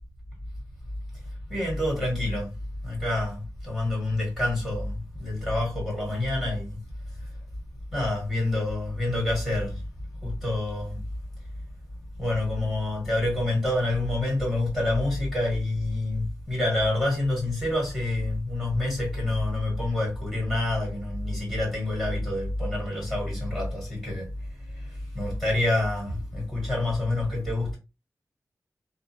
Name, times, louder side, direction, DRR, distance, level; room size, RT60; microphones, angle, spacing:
voice 1, 1.5-2.5 2.8-6.8 7.9-9.8 10.2-11.0 12.2-24.3 24.7-27.8, left 1 dB, 5° left, 1.7 m, -27 dB
2.9 x 2.0 x 2.4 m
wide cardioid pair, 105°, 6 cm